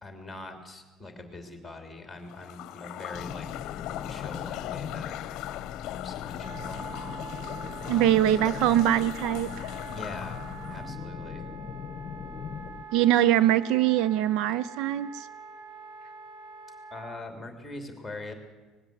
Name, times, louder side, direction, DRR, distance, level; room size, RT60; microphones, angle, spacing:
voice 1, 0.0-3.5 3.9-5.3 5.8-6.9 7.8-8.3 9.8-11.5 16.9-18.3, left 2 dB, 5° left, 6 dB, 3.1 m, -42 dB
sound 1, 2.2-10.9, left 13 dB, 55° left, 0.9 m, -39 dB
sound 2, 3.1-12.8, left 7 dB, 35° left, 1.1 m, -40 dB
Wind instrument woodwind instrument, 6.4-17.2, right 5 dB, 45° right, 1.5 m, -45 dB
voice 2, 7.9-9.7 12.9-15.3, right 12 dB, 65° right, 18 dB, 0.6 m, -23 dB
20.0 x 15.5 x 8.4 m, 1.2 s
cardioid pair, 175°, 0 cm